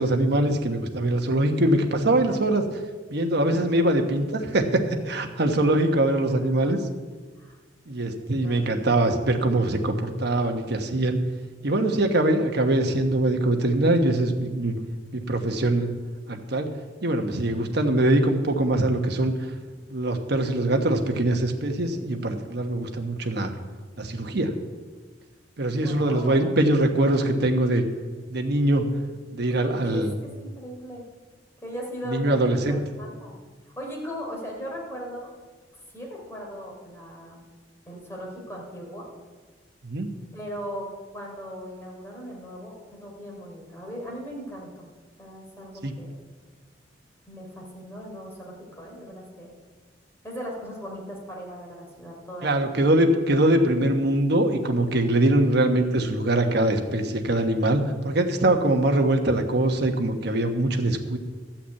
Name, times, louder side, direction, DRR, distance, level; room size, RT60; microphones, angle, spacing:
voice 1, 0.0-2.7 3.1-6.8 7.9-11.2 11.6-14.8 15.1-15.9 16.3-16.7 17.0-19.3 19.9-23.5 24.0-24.5 25.6-27.8 28.3-28.9 29.3-30.1 32.1-32.8 39.8-40.1 45.8-45.9 52.4-61.2, right 1 dB, 65° right, 4 dB, 1.2 m, -23 dB
voice 2, 6.0-6.9 7.4-7.6 8.4-8.6 18.0-18.3 25.8-26.4 29.5-31.0 31.6-33.3 33.7-35.3 35.9-37.4 37.9-39.1 40.3-44.7 45.2-46.2 47.3-49.5 50.2-52.7, equal, 15° left, -2 dB, 3.4 m, -38 dB
13.0 x 5.9 x 8.2 m, 1.4 s
head